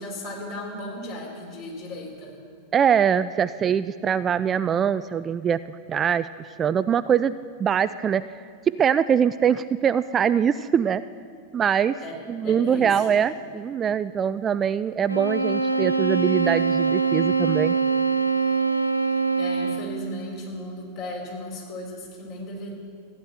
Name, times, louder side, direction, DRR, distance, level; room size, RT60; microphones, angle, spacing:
voice 1, 0.0-2.4 12.0-12.1 12.4-13.1 19.2-22.7, left 1 dB, 45° left, -1 dB, 4.1 m, -35 dB
voice 2, 2.7-5.6 5.9-7.3 7.6-8.5 8.8-11.0 11.5-12.0 12.3-17.8, right 8 dB, 25° right, 14 dB, 0.3 m, -23 dB
sound 1, 15.1-20.0, right 4 dB, 90° left, 0.6 m, -23 dB
14.5 x 10.5 x 6.8 m, 2.1 s
figure-of-eight pair, 90°, 0 cm